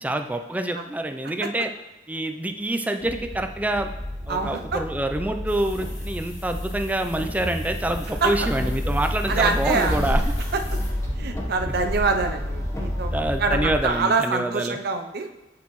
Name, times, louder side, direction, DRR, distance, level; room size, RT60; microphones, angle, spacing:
voice 1, 0.0-1.7 2.1-3.9 4.3-10.3 11.7-11.8 13.1-14.8, right 1 dB, 10° right, 6 dB, 0.4 m, -26 dB
sound 1, 3.0-13.9, equal, 15° left, 1.0 m, -29 dB
voice 2, 4.3-4.8 8.2-8.5 9.3-10.0 10.5-10.8 11.2-15.3, right 4 dB, 60° right, 5 dB, 0.6 m, -25 dB
sound 2, 5.5-10.9, left 2 dB, 40° left, 1.9 m, -44 dB
8.4 x 6.4 x 3.0 m, 0.96 s
head